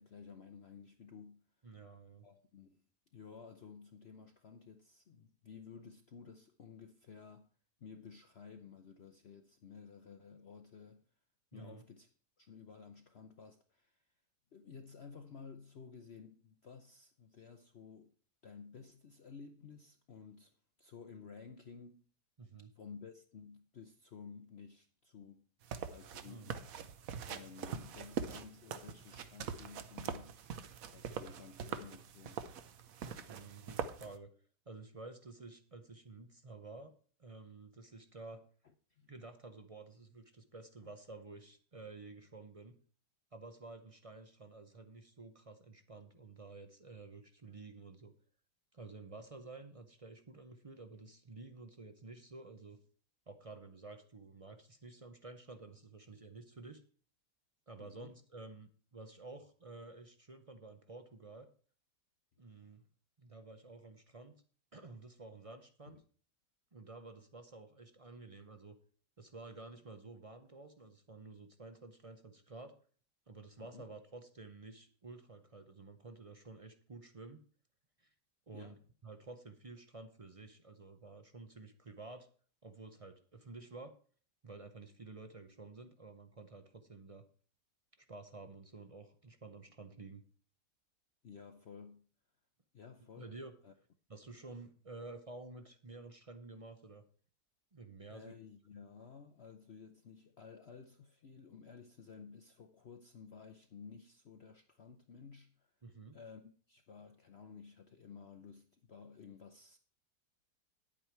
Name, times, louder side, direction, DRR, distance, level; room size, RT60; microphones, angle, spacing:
voice 1, 0.0-1.4 2.2-2.8 3.1-7.5 7.8-11.0 11.5-14.0 14.5-18.1 18.4-22.0 22.8-25.5 25.9-26.6 27.3-30.4 30.9-32.5 38.6-39.1 57.8-58.1 65.9-66.0 73.6-73.8 78.5-78.8 91.2-92.1 92.7-93.3 93.6-93.7 98.1-105.7 106.1-109.8, left 6 dB, 55° left, 0.8 m, -54 dB
voice 2, 1.6-2.3 11.5-11.8 22.4-22.7 26.3-26.5 33.0-34.3 34.7-36.9 37.2-38.4 39.1-42.8 43.3-48.1 48.7-52.8 53.3-56.8 57.7-61.5 62.4-62.8 63.2-64.3 64.7-66.0 66.7-68.8 69.2-72.7 73.3-77.4 78.0-78.1 78.5-78.8 79.0-82.3 82.6-83.9 84.4-87.2 88.0-90.2 93.2-93.5 94.1-97.0 97.7-98.3 105.8-106.1, right 3 dB, 40° right, 0.5 m, -51 dB
sound 1, 25.6-34.2, right 7 dB, 60° right, 1.2 m, -43 dB
10.0 x 8.7 x 4.6 m
omnidirectional pair, 1.8 m